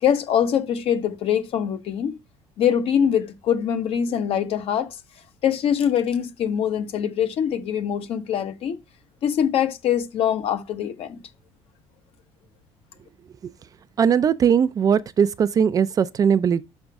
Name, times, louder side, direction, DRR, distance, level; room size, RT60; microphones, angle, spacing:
voice 1, 0.0-2.2 2.6-5.0 5.4-8.8 9.2-11.2, left 9 dB, 60° left, 1.0 m, -23 dB
voice 2, 14.0-16.6, right 7 dB, 30° right, 0.3 m, -19 dB
5.9 x 5.3 x 3.5 m
cardioid pair, 125°, 11 cm